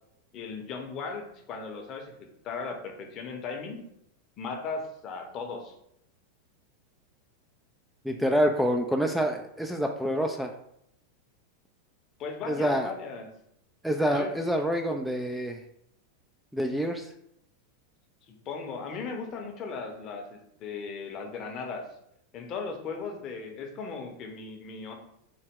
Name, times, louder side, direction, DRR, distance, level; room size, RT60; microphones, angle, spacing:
voice 1, 0.3-3.8 4.4-5.7 12.2-13.3 14.1-14.3 18.3-21.9 22.3-24.9, left 4 dB, 40° left, 3 dB, 0.8 m, -37 dB
voice 2, 8.0-10.5 12.5-12.9 13.8-15.6 16.5-17.1, equal, ahead, 3 dB, 0.3 m, -27 dB
4.0 x 2.1 x 3.6 m, 0.74 s
figure-of-eight pair, 90°, 0 cm